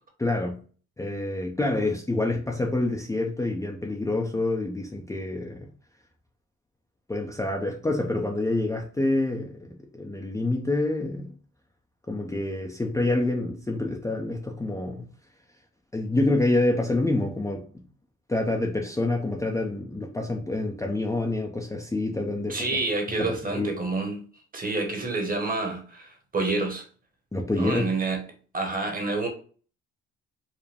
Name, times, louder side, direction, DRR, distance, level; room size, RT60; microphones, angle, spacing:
voice 1, 0.2-0.6 1.0-5.7 7.1-11.3 12.1-15.0 15.9-17.8 18.3-22.7 23.2-23.7 27.3-27.8, left 2 dB, 10° left, 0.6 m, -27 dB
voice 2, 22.5-24.2 24.5-26.9 27.5-28.2 28.5-29.3, right 3 dB, 30° right, 1.3 m, -28 dB
4.8 x 2.2 x 3.4 m
cardioid pair, 90°, 30 cm